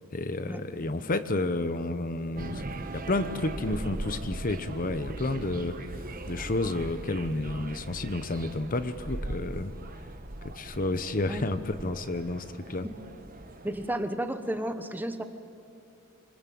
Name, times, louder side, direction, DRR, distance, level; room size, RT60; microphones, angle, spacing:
voice 1, 0.1-2.6 2.9-5.8 6.3-9.7 10.4-12.9, left 2 dB, 40° left, 11 dB, 0.9 m, -31 dB
sound 1, 2.4-13.9, right 2 dB, 40° right, 1.2 m, -39 dB
voice 2, 13.6-15.2, right 1 dB, 10° right, 8 dB, 1.1 m, -32 dB
26.5 x 24.0 x 8.6 m, 2.5 s
head